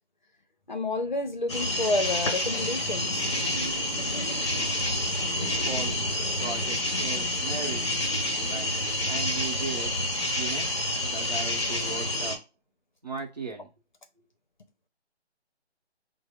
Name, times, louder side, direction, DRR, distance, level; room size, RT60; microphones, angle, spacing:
voice 1, 0.7-3.2 4.1-4.4, left 2 dB, 45° left, 0.7 m, -30 dB
sound 1, 1.5-12.4, left 1 dB, 25° left, 0.9 m, -28 dB
voice 2, 5.3-6.0 6.4-7.9 8.3-8.7 9.1-10.0 10.3-12.4 13.0-13.7, right 4 dB, 40° right, 1.0 m, -37 dB
4.7 x 2.1 x 3.5 m
figure-of-eight pair, 170°, 34 cm